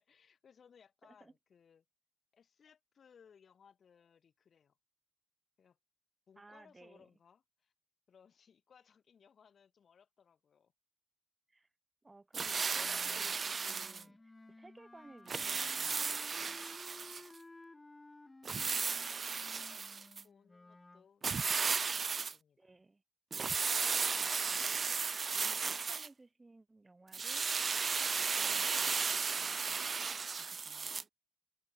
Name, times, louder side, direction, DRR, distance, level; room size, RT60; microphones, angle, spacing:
voice 1, 0.0-1.8 2.3-4.8 5.6-5.8 6.3-7.7 8.1-10.7 16.9-17.3 19.0-22.8, left 7 dB, 50° left, 3.5 m, -65 dB
voice 2, 1.0-1.3 6.4-7.1 11.5-11.7 12.0-16.7 18.8-19.1 22.6-23.0 24.1-24.9 25.3-27.9 28.2-31.0, right 2 dB, 20° right, 3.9 m, -60 dB
sound 1, 12.3-14.0 15.3-17.3 18.4-20.2 21.2-22.3 23.3-26.1 27.1-31.0, right 5 dB, 35° right, 0.3 m, -35 dB
Wind instrument woodwind instrument, 12.7-21.1, left 2 dB, 15° left, 3.8 m, -56 dB
cardioid pair, 90°, 0 cm